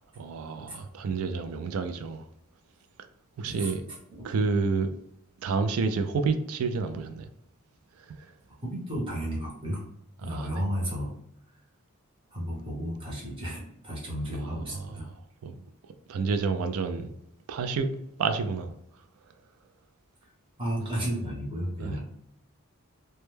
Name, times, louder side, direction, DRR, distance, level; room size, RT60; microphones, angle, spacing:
voice 1, 0.2-2.3 3.4-3.8 4.2-4.9 5.4-7.2 10.3-10.5 14.4-14.6 15.4-15.6 16.1-17.1 17.5-18.7 21.8-22.0, right 4 dB, 85° right, 0.4 m, -29 dB
voice 2, 3.4-4.3 8.5-9.8 10.2-11.1 11.5-11.6 12.3-15.1 20.2-20.3 20.6-22.0, equal, 25° right, 0.9 m, -33 dB
2.2 x 2.1 x 3.1 m
head